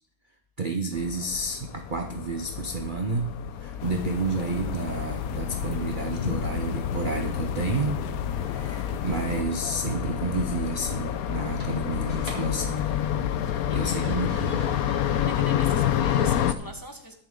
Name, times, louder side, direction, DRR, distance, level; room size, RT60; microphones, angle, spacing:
voice 1, 0.6-3.3 3.6-12.9 13.5-14.7, right 3 dB, 40° right, 4 dB, 0.8 m, -31 dB
sound 1, 0.9-16.5, left 10 dB, 65° left, 1.1 m, -29 dB
voice 2, 3.5-3.9 13.3-13.9 15.0-17.1, equal, 15° left, 3 dB, 1.1 m, -43 dB
sound 2, 3.8-9.4, left 8 dB, 85° left, 1.3 m, -34 dB
sound 3, 10.5-16.1, right 1 dB, 20° right, 3.1 m, -45 dB
21.0 x 7.0 x 3.8 m, 0.68 s
omnidirectional pair, 1.7 m